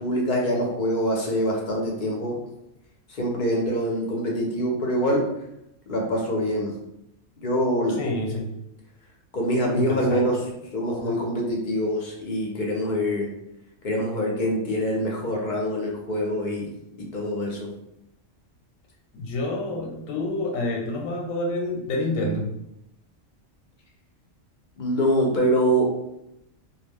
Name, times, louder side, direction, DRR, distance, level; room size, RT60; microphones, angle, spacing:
voice 1, 0.0-2.3 3.1-5.2 5.9-6.7 7.4-8.0 9.3-10.4 10.7-13.3 13.8-16.7 17.0-17.7 24.8-25.9, equal, 50° left, -1 dB, 0.6 m, -24 dB
voice 2, 8.0-8.5 9.8-10.3 11.0-11.1 19.1-22.5, left 1 dB, 90° left, 0 dB, 1.0 m, -28 dB
2.3 x 2.1 x 3.4 m, 0.83 s
omnidirectional pair, 1.3 m